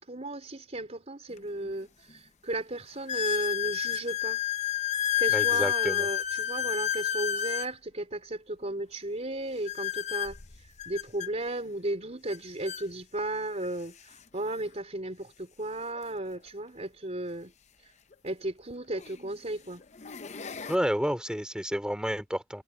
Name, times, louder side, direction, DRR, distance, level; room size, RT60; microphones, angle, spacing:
voice 1, 0.0-4.4 5.2-17.5 17.8-17.9 18.2-19.8, right 1 dB, 35° right, 4.0 m, -35 dB
sound 1, 1.4-1.5 2.1-2.2 3.1-7.7 9.7-11.3 12.3-12.4 12.7-12.8 13.6-13.7 15.9-16.0 18.1-18.2 19.0-19.3 19.8-20.8, left 11 dB, 35° left, 0.7 m, -30 dB
voice 2, 5.3-6.1 20.7-22.6, equal, 5° right, 3.2 m, -30 dB
head